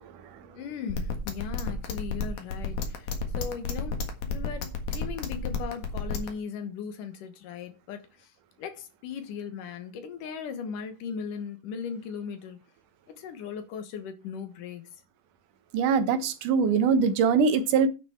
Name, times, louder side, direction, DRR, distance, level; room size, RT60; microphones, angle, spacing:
voice 1, 0.5-8.3 8.6-12.6 13.1-15.0, left 6 dB, 75° left, 2.9 m, -38 dB
sound 1, 0.9-6.3, left 5 dB, 60° left, 2.8 m, -30 dB
voice 2, 15.7-17.9, right 5 dB, 75° right, 2.6 m, -22 dB
10.0 x 6.1 x 5.9 m
omnidirectional pair, 3.9 m